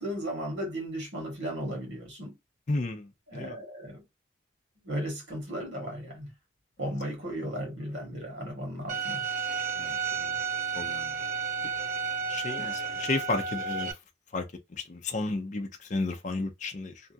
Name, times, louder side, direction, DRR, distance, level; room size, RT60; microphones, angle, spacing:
voice 1, 0.0-2.3 3.3-4.0 4.8-6.3 6.8-9.2 12.6-13.0, equal, 80° right, 1.4 m, -36 dB
voice 2, 2.7-3.6 9.8-10.4 10.7-11.2 12.3-14.0 14.3-17.0, left 2 dB, 40° left, 0.5 m, -33 dB
Bowed string instrument, 8.9-13.9, right 6 dB, 40° right, 0.4 m, -32 dB
2.7 x 2.3 x 2.6 m
head